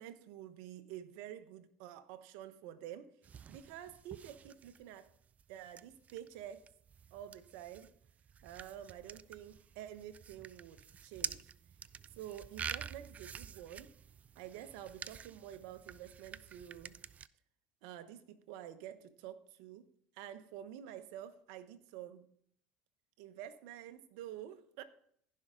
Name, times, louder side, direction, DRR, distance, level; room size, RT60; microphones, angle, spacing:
voice 1, 0.0-3.1 3.5-5.1 5.5-6.7 7.1-7.9 8.4-11.5 12.2-13.9 14.3-17.0 17.8-19.9 20.1-22.2 23.2-24.8, right 11 dB, 75° right, 1.0 m, -49 dB
sound 1, 3.2-17.3, right 7 dB, 35° right, 0.4 m, -48 dB
16.0 x 5.6 x 3.8 m
hypercardioid pair, 80°, 4 cm